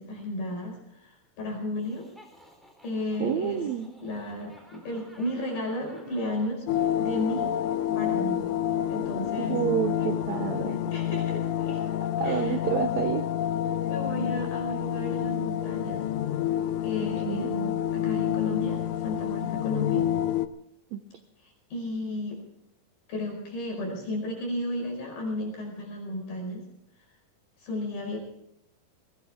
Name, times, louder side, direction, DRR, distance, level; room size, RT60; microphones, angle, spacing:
voice 1, 0.0-2.1 2.8-3.6 4.0-7.5 7.9-8.5 8.9-9.6 10.9-11.8 12.2-12.6 13.9-16.0 16.8-20.1 21.4-22.4 23.1-26.7 27.6-28.2, left 1 dB, 70° left, 0 dB, 6.9 m, -34 dB
Laughter, 1.8-6.6, equal, ahead, 3.6 m, -55 dB
voice 2, 3.2-3.9 9.4-10.8 12.2-13.3 17.2-17.5 20.9-21.0, right 9 dB, 80° right, 7 dB, 1.6 m, -29 dB
sound 1, 6.7-20.5, left 11 dB, 90° left, 1.6 m, -28 dB
21.0 x 19.0 x 3.6 m, 0.77 s
omnidirectional pair, 4.3 m